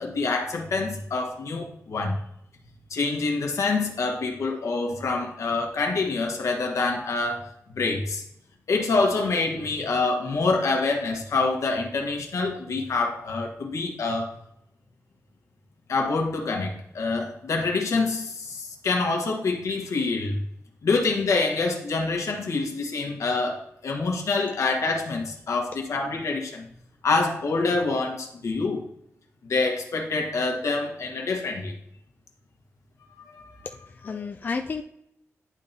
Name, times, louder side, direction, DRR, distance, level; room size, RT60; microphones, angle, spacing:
voice 1, 0.0-2.2 2.9-7.4 7.7-8.2 8.7-14.3 15.9-20.4 20.8-26.7 27.0-28.8 29.4-31.8 33.2-33.6 34.2-34.3, left 3 dB, 75° left, 2 dB, 1.3 m, -26 dB
voice 2, 33.6-34.8, left 4 dB, 35° left, 4 dB, 0.4 m, -32 dB
10.5 x 3.7 x 2.7 m, 0.79 s
wide cardioid pair, 115°, 5 cm